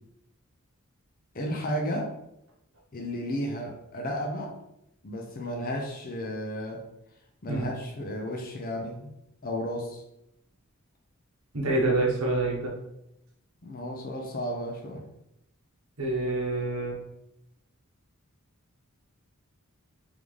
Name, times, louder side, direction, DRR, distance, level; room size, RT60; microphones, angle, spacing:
voice 1, 1.3-2.1 2.9-4.5 5.0-6.8 7.4-9.1 9.4-10.0 13.6-15.0, equal, 40° left, 1 dB, 0.6 m, -33 dB
voice 2, 11.5-12.7 16.0-17.0, right 2 dB, 70° right, -1 dB, 1.0 m, -27 dB
3.7 x 3.4 x 3.3 m, 0.82 s
head